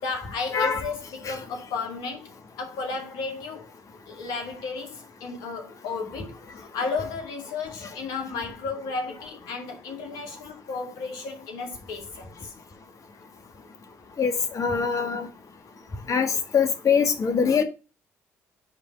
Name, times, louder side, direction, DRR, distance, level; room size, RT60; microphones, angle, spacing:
voice 1, 0.0-2.3 2.6-3.7 4.1-12.5, left 4 dB, 65° left, 2.1 m, -33 dB
voice 2, 0.5-0.8 1.2-1.3 14.2-15.3 16.1-17.6, left 6 dB, 45° left, 1.4 m, -23 dB
9.7 x 3.6 x 5.1 m
figure-of-eight pair, 45°, 7 cm